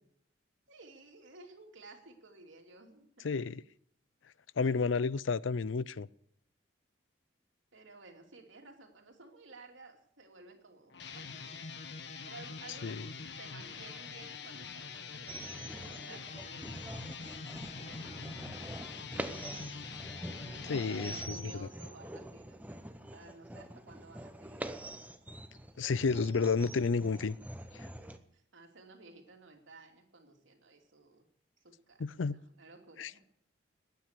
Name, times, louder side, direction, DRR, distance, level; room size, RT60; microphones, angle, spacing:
voice 1, 0.7-3.3 7.7-11.6 12.2-17.2 17.9-18.9 20.6-24.6 28.0-31.3 31.6-33.2, right 3 dB, 80° right, 3.0 m, -55 dB
voice 2, 3.2-3.6 4.6-6.1 12.8-13.0 20.7-21.7 25.8-27.4 27.7-27.9 32.0-32.4 33.0-33.1, left 4 dB, 80° left, 0.5 m, -31 dB
sound 1, 10.9-21.3, left 5 dB, 60° left, 1.2 m, -45 dB
sound 2, 15.3-28.2, right 1 dB, 10° right, 0.8 m, -45 dB
19.5 x 9.4 x 6.8 m
head